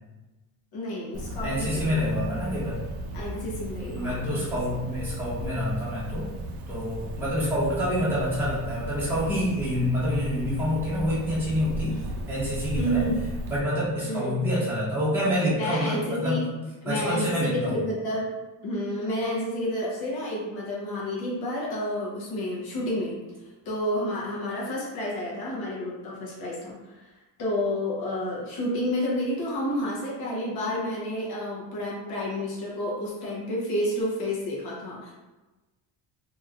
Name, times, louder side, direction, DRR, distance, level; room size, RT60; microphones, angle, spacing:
voice 1, 0.7-2.3 3.1-4.8 12.8-13.3 14.0-14.5 15.5-16.4 16.8-18.3 18.6-23.2 23.6-27.0 27.4-35.1, left 1 dB, 55° left, -5 dB, 1.0 m, -30 dB
Cricket, 1.1-13.6, right 1 dB, 55° right, 0.5 m, -35 dB
voice 2, 1.4-2.8 3.9-6.3 6.7-12.0 12.3-13.1 13.5-16.5 16.8-17.7, equal, 5° right, -9 dB, 0.9 m, -27 dB
3.1 x 2.9 x 2.4 m, 1.1 s
cardioid pair, 155°, 44 cm